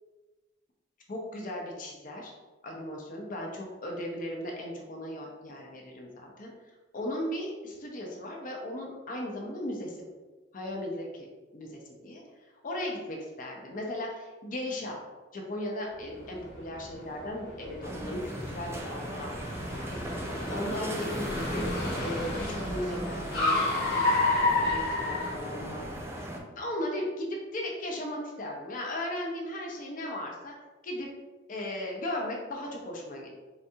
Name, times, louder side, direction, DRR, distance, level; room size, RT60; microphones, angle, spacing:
voice 1, 1.1-2.3 2.6-6.5 6.9-10.0 10.5-11.3 11.5-12.2 12.6-15.0 15.3-21.6 22.0-25.8 26.1-30.5 30.8-31.1 31.5-33.3, left 1 dB, 45° left, -1 dB, 0.7 m, -37 dB
Car, 16.1-26.0, left 2 dB, 65° left, 1.0 m, -31 dB
sound 1, 17.8-26.4, right 1 dB, 15° right, 0.3 m, -37 dB
4.0 x 2.3 x 2.7 m, 1.2 s
head